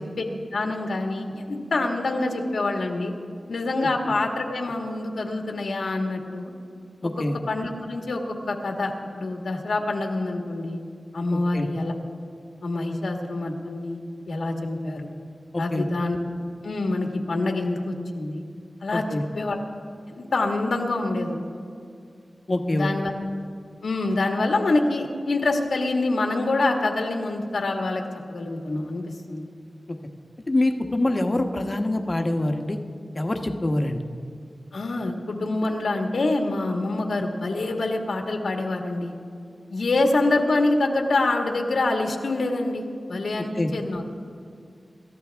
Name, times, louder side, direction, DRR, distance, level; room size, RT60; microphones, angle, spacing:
voice 1, 0.5-3.1 3.5-6.5 7.0-7.1 7.5-8.2 8.5-10.8 11.1-11.9 12.6-14.0 14.3-15.1 15.6-16.2 16.6-18.4 18.8-19.0 19.4-19.6 20.1-21.4 22.7-23.1 23.8-28.0 28.3-29.5 34.7-39.1 39.7-42.8 43.1-44.0, left 2 dB, 85° left, 2 dB, 1.7 m, -26 dB
voice 2, 7.0-7.4 11.5-11.7 15.5-15.9 18.9-19.2 22.5-22.9 30.5-32.8 33.1-34.0 43.5-43.7, left 1 dB, 35° left, 4 dB, 1.2 m, -25 dB
26.5 x 13.5 x 3.5 m, 2.3 s
wide cardioid pair, 90°, 0 cm